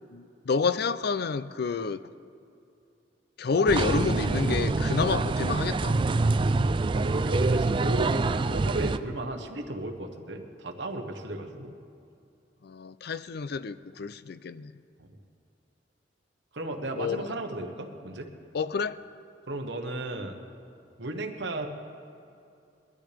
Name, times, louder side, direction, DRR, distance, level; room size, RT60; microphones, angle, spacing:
voice 1, 0.0-2.0 3.4-6.0 12.6-14.7 17.0-17.3 18.5-19.0, left 5 dB, 60° left, 0.4 m, -29 dB
sound 1, 3.7-9.0, right 3 dB, 30° right, 0.3 m, -25 dB
voice 2, 6.9-11.7 16.5-18.3 19.5-20.4 21.0-21.7, right 2 dB, 75° right, 1.2 m, -34 dB
20.5 x 12.5 x 3.4 m
head